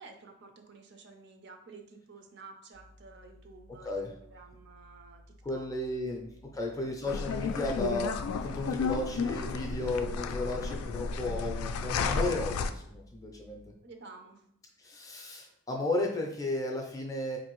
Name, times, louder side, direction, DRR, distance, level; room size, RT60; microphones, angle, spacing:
voice 1, 0.0-6.2 6.5-6.9 13.8-14.5, right 4 dB, 50° right, 4 dB, 0.5 m, -52 dB
sound 1, 2.7-13.7, left 1 dB, 85° right, 0.8 m, -56 dB
voice 2, 5.4-6.3 6.5-13.6 14.8-17.4, left 2 dB, 15° left, 0 dB, 0.4 m, -34 dB
sound 2, 7.1-12.7, left 5 dB, 85° left, 0.3 m, -32 dB
4.3 x 2.6 x 3.0 m, 0.72 s
head